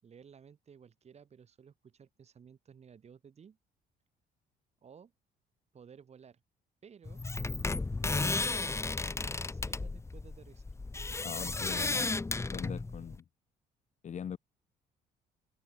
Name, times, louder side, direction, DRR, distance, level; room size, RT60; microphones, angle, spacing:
voice 1, 0.0-3.6 4.8-5.1 5.7-6.4 6.8-7.2 8.0-10.6, right 7 dB, 40° right, 6.8 m, -56 dB
sound 1, 7.1-13.2, left 3 dB, 15° left, 1.6 m, -34 dB
voice 2, 11.2-13.2 14.0-14.4, left 8 dB, 45° left, 4.2 m, -41 dB
open air
cardioid pair, 110°, 17 cm